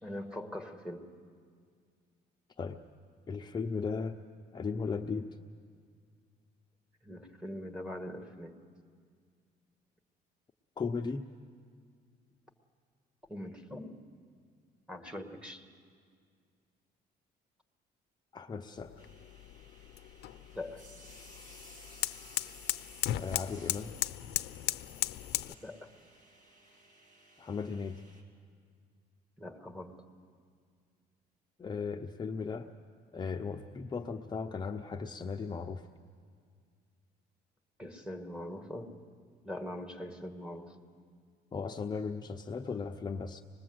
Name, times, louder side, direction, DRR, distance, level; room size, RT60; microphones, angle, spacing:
voice 1, 0.0-1.1 7.0-8.5 13.3-13.9 14.9-15.7 20.5-20.9 25.6-25.9 29.4-30.0 37.8-38.9 39.4-40.7, left 1 dB, 5° right, 4 dB, 1.8 m, -42 dB
voice 2, 3.3-4.2 4.5-5.3 10.8-11.3 18.3-19.0 23.2-23.9 27.4-28.0 31.6-32.7 33.1-35.9 41.5-43.4, left 5 dB, 25° left, 3 dB, 0.7 m, -36 dB
sound 1, 18.8-25.5, left 14 dB, 75° left, 0.7 m, -37 dB
sound 2, 19.0-28.2, right 1 dB, 50° right, 3.2 m, -57 dB
26.0 x 20.0 x 7.8 m, 2.1 s
cardioid pair, 110°, 17 cm